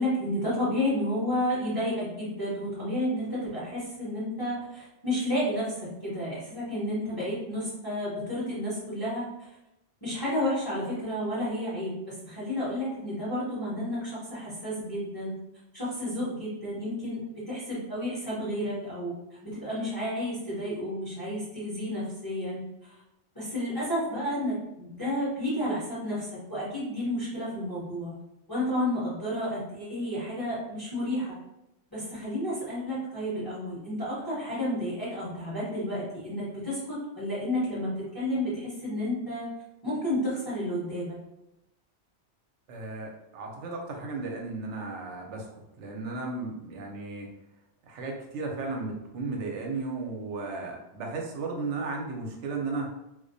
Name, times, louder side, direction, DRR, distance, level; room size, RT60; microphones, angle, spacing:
voice 1, 0.0-9.3 10.0-15.4 15.7-19.1 19.4-22.6 23.3-28.2 28.5-31.4 31.9-39.5 39.8-41.2, left 1 dB, 20° left, -10 dB, 0.8 m, -31 dB
voice 2, 42.7-45.5 45.8-47.3 47.8-52.9, right 3 dB, 80° right, 1 dB, 0.9 m, -35 dB
2.3 x 2.1 x 2.5 m, 0.88 s
omnidirectional pair, 1.2 m